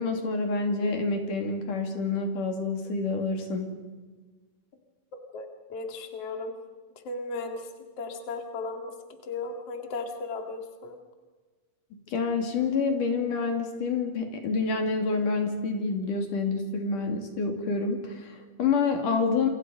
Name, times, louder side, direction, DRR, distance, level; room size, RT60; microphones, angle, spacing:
voice 1, 0.0-3.7 12.1-19.5, left 4 dB, 75° left, 4 dB, 4.3 m, -28 dB
voice 2, 5.3-6.5 7.0-7.7 8.0-8.9 9.2-11.0, left 3 dB, 50° left, 4 dB, 3.1 m, -36 dB
28.0 x 25.5 x 5.3 m, 1.4 s
omnidirectional pair, 3.7 m